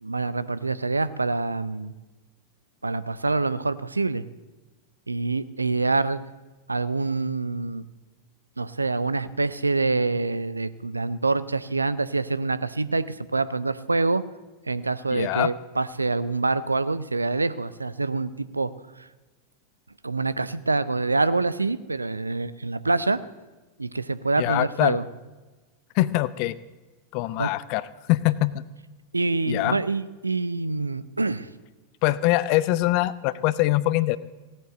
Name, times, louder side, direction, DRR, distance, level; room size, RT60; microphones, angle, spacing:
voice 1, 0.0-1.9 2.8-4.2 5.1-6.2 6.7-7.8 8.6-14.2 14.7-18.7 19.0-19.1 20.0-23.2 23.8-25.0 27.4-27.5 29.1-31.5, right 3 dB, 80° right, 16 dB, 0.6 m, -26 dB
voice 2, 15.1-15.5 24.4-25.0 26.0-26.5 27.1-28.5 29.5-29.8 32.0-34.2, left 17 dB, 45° left, 18 dB, 0.6 m, -23 dB
17.0 x 9.1 x 7.8 m, 1.2 s
figure-of-eight pair, 90°, 0 cm